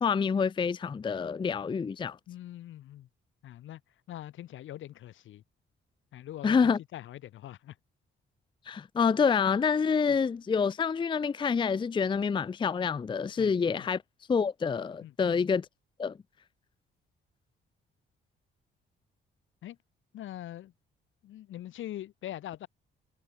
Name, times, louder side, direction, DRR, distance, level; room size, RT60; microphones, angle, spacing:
voice 1, 0.0-2.2 6.4-6.8 8.7-14.0 14.3-15.7 16.0-16.2, left 6 dB, 25° left, 0.5 m, -27 dB
voice 2, 2.3-3.1 3.4-3.8 4.1-5.4 6.1-7.8 10.1-10.2 13.4-13.9 15.0-15.4 19.6-19.8 20.1-20.7 21.2-22.7, left 13 dB, 75° left, 2.7 m, -43 dB
cardioid pair, 90°, 20 cm